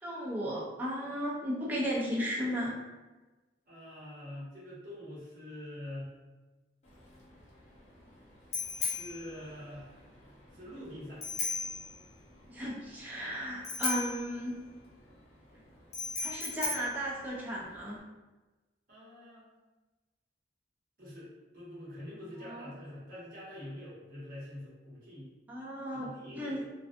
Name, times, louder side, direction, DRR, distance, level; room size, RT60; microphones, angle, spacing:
voice 1, 0.0-2.8 12.5-14.6 16.2-18.0 22.4-22.7 25.5-26.6, equal, 10° right, -5 dB, 0.5 m, -35 dB
voice 2, 3.7-6.1 8.7-10.0 10.5-11.4 18.9-19.5 21.0-25.3 25.9-26.7, left 1 dB, 55° right, -8 dB, 1.0 m, -45 dB
Bicycle bell, 6.8-18.0, left 4 dB, 40° left, 0.6 m, -39 dB
2.3 x 2.3 x 2.5 m, 1.2 s
head